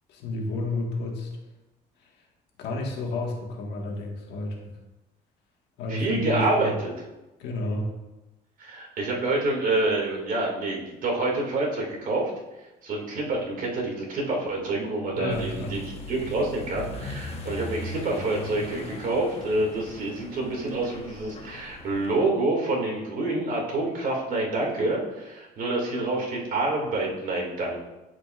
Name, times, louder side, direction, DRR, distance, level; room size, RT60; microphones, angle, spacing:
voice 1, 0.1-1.3 2.0-2.1 2.6-4.7 5.8-6.8 7.4-7.9 15.1-15.8, left 2 dB, 85° left, 0 dB, 1.6 m, -31 dB
voice 2, 5.9-6.9 8.6-12.3 12.8-15.8 16.1-27.8, right 2 dB, 55° right, -1 dB, 2.2 m, -27 dB
Accelerating revving vroom, 15.3-22.2, left 3 dB, 35° left, 1.1 m, -39 dB
12.0 x 5.0 x 2.5 m, 1.0 s
cardioid pair, 110°, 17 cm